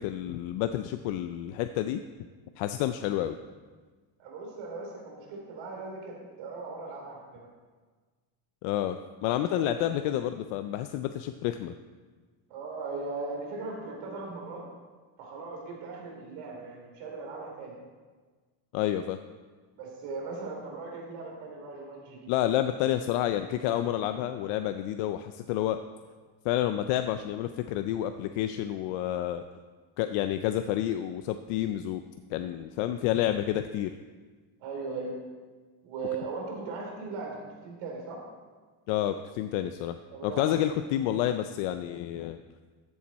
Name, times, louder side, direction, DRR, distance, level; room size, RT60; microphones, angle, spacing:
voice 1, 0.0-2.0 2.6-3.4 8.6-11.7 18.7-19.2 22.3-25.8 26.4-29.4 30.0-32.0 32.3-33.9 38.9-42.4, left 12 dB, 85° left, 9 dB, 0.6 m, -29 dB
voice 2, 4.2-7.5 9.4-9.7 12.5-14.6 15.2-17.8 19.8-22.3 34.6-35.2 35.8-38.2 40.1-40.7, right 3 dB, 80° right, -1 dB, 3.3 m, -38 dB
14.0 x 7.3 x 4.2 m, 1.4 s
cardioid pair, 165°, 48 cm